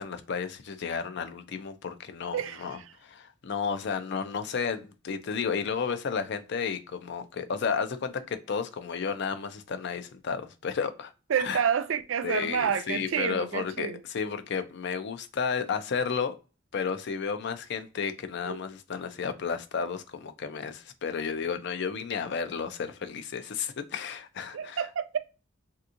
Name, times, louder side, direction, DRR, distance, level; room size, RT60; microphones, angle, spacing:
voice 1, 0.0-11.1 11.4-11.6 12.2-16.3 16.7-24.9, left 6 dB, 60° left, 0.4 m, -32 dB
voice 2, 2.3-2.6 11.3-14.0 18.4-18.6 24.5-25.2, right 7 dB, 85° right, 0.4 m, -29 dB
3.5 x 2.8 x 2.4 m
head